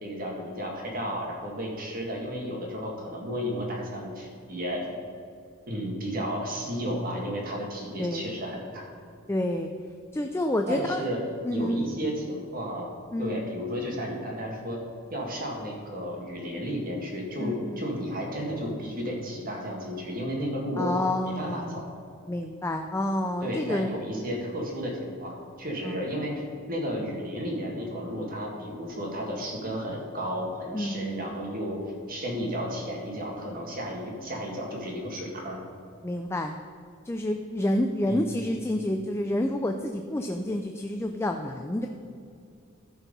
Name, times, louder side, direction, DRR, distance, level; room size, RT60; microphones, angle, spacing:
voice 1, 0.0-4.9 5.7-8.8 10.7-11.2 11.5-12.9 13.2-14.8 15.1-20.9 21.2-21.9 23.4-31.8 32.1-35.6 38.1-38.3, equal, 40° right, -1 dB, 1.8 m, -33 dB
voice 2, 9.3-9.7 10.1-11.0 11.4-11.9 13.1-13.4 17.4-17.8 20.8-21.8 22.3-23.9 25.8-26.0 30.7-31.1 36.0-36.6 37.0-41.9, left 1 dB, 10° left, 4 dB, 0.4 m, -29 dB
13.5 x 4.6 x 5.3 m, 2.4 s
head